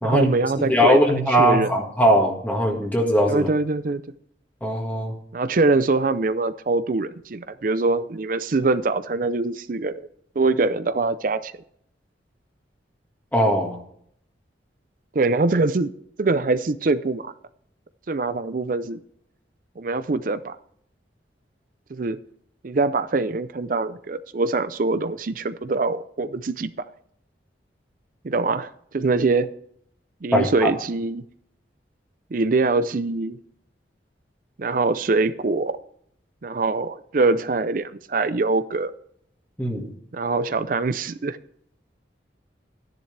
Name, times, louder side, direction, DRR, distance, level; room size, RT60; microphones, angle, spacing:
voice 1, 0.0-1.0 1.3-1.7 3.3-4.0 5.3-9.9 10.4-11.5 15.1-15.9 16.2-17.3 18.1-19.0 19.8-20.6 21.9-22.2 22.6-26.7 28.2-29.5 30.2-31.2 32.3-33.4 34.6-35.8 36.4-38.9 40.1-41.4, right 3 dB, 50° right, 13 dB, 0.5 m, -23 dB
voice 2, 0.7-3.5 4.6-5.1 13.3-13.8 30.3-30.7 39.6-39.9, equal, 10° left, 0 dB, 1.7 m, -20 dB
13.0 x 10.5 x 3.3 m, 0.67 s
head